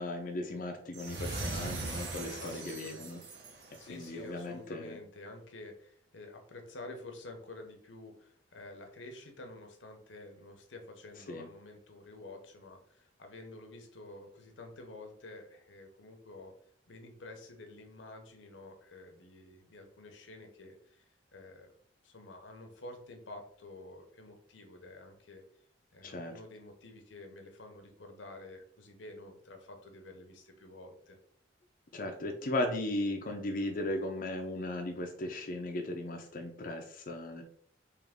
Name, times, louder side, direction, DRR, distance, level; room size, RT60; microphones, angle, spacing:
voice 1, 0.0-3.2 3.9-5.0 11.3-11.5 26.0-26.3 31.9-37.4, left 1 dB, 45° left, 2 dB, 0.5 m, -36 dB
sound 1, 0.9-4.2, right 2 dB, 65° right, 0.9 m, -40 dB
voice 2, 2.4-3.1 3.6-16.5 16.9-21.8 22.0-25.4 25.9-31.2, left 2 dB, 85° left, 4 dB, 0.8 m, -50 dB
3.5 x 3.0 x 3.5 m, 0.63 s
head